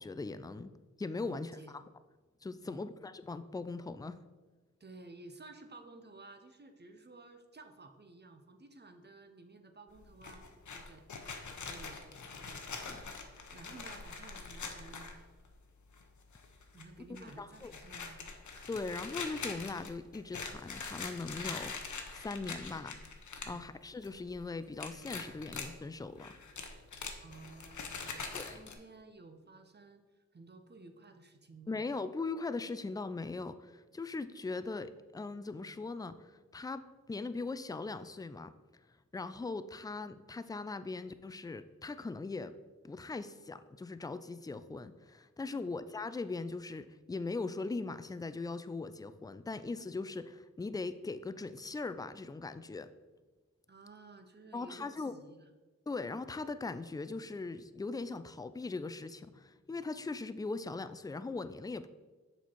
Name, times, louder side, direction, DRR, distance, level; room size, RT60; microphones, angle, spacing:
voice 1, 0.0-1.8 2.4-4.2 12.9-13.0 17.2-17.7 18.7-23.0 23.5-26.4 28.3-28.6 31.7-38.5 39.1-42.6 42.8-52.9 54.5-55.1 55.9-61.9, left 3 dB, 15° left, 12 dB, 0.3 m, -40 dB
voice 2, 1.2-1.8 2.6-2.9 4.8-10.5 10.7-11.0 11.6-13.2 13.5-15.1 16.7-18.2 18.5-18.8 23.4-23.7 27.2-31.9 45.5-45.7 53.7-55.5, right 3 dB, 35° right, 7 dB, 0.7 m, -54 dB
sound 1, 10.0-15.5 15.9-16.0 16.3-16.8 17.1-23.6 23.9-24.4 24.8-25.7 26.2-28.7, left 4 dB, 85° left, 0.8 m, -44 dB
7.0 x 4.4 x 4.4 m, 1.3 s
wide cardioid pair, 65°, 29 cm